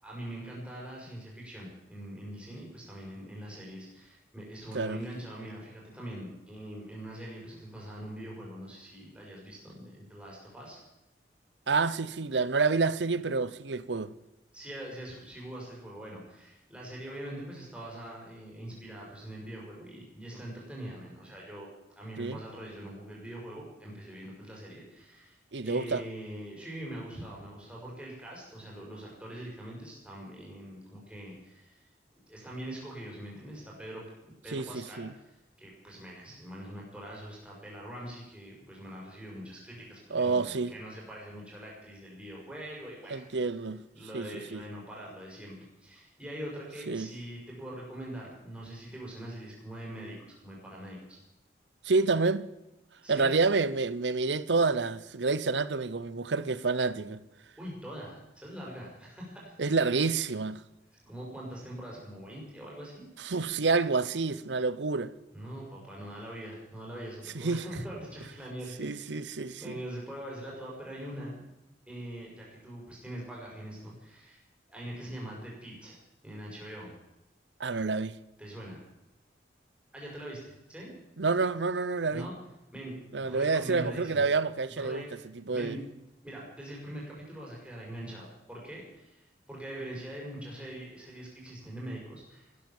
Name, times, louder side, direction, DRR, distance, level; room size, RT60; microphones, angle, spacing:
voice 1, 0.0-10.8 14.5-21.7 22.0-31.8 32.3-43.3 43.9-51.2 53.0-53.3 57.6-59.6 61.0-63.1 65.3-71.4 71.9-74.4 74.7-76.0 76.2-76.9 78.4-78.8 79.9-80.9 82.1-82.3 82.7-84.3 84.8-85.1 85.5-85.8 86.2-92.5, right 1 dB, 5° right, 5.8 m, -43 dB
voice 2, 11.7-14.1 22.2-22.4 25.5-26.0 34.5-35.1 40.1-40.7 43.1-43.8 44.1-44.6 46.9-47.1 51.8-52.4 53.1-57.2 59.6-60.6 63.2-65.1 67.3-67.6 68.8-69.8 77.6-78.1 81.2-82.3 83.1-85.0 85.3-85.8, right 4 dB, 90° right, 0.8 m, -28 dB
15.5 x 13.0 x 7.3 m
head